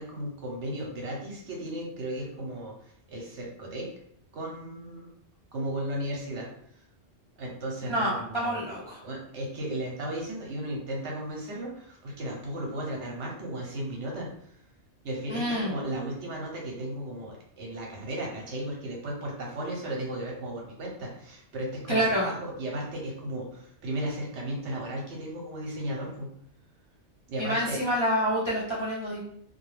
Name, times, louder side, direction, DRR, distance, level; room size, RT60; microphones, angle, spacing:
voice 1, 0.0-2.7 3.1-3.9 4.3-5.1 5.5-6.5 6.7-6.8 7.4-8.6 9.0-14.3 15.0-26.3 27.3-27.8, right 1 dB, 70° right, -1 dB, 1.0 m, -35 dB
voice 2, 7.9-9.0 15.3-15.7 21.9-22.3 27.4-29.2, equal, 35° left, -7 dB, 0.5 m, -27 dB
2.3 x 2.2 x 3.1 m, 0.66 s
omnidirectional pair, 1.3 m